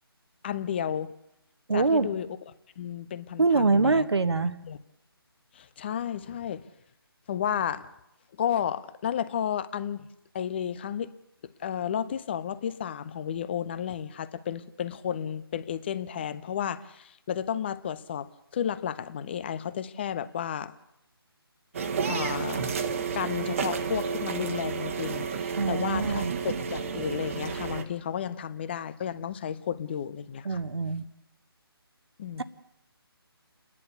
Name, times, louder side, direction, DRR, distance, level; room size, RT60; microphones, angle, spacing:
voice 1, 0.4-1.1 1.7-2.3 2.8-4.1 4.6-4.8 5.5-6.7 7.3-7.9 8.4-10.1 10.3-11.1 11.4-20.7 22.1-22.6 23.1-26.3 26.7-30.6 32.2-32.4, left 9 dB, 25° left, 15 dB, 0.7 m, -32 dB
voice 2, 1.7-2.1 3.4-4.5 25.5-26.3 30.4-31.0 32.4-32.5, right 3 dB, 85° right, 11 dB, 1.4 m, -24 dB
sound 1, 21.7-27.8, right 6 dB, 35° right, 1.4 m, -31 dB
29.5 x 11.0 x 8.3 m, 0.84 s
figure-of-eight pair, 160°, 13 cm